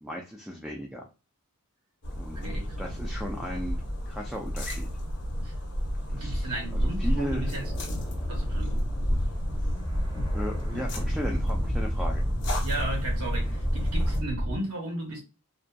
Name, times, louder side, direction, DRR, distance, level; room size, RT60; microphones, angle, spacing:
voice 1, 0.0-1.1 2.2-2.5 2.8-3.8 4.1-4.9 6.1-7.5 10.3-12.2, equal, ahead, 0.3 m, -36 dB
sound 1, 2.0-14.2, equal, 55° left, 0.8 m, -31 dB
voice 2, 2.3-2.9 5.4-5.5 6.1-7.7 8.3-8.8 10.7-10.8 12.6-15.2, right 2 dB, 85° right, 0.8 m, -36 dB
sound 2, 6.4-14.6, equal, 15° left, 0.9 m, -32 dB
2.5 x 2.4 x 2.2 m
head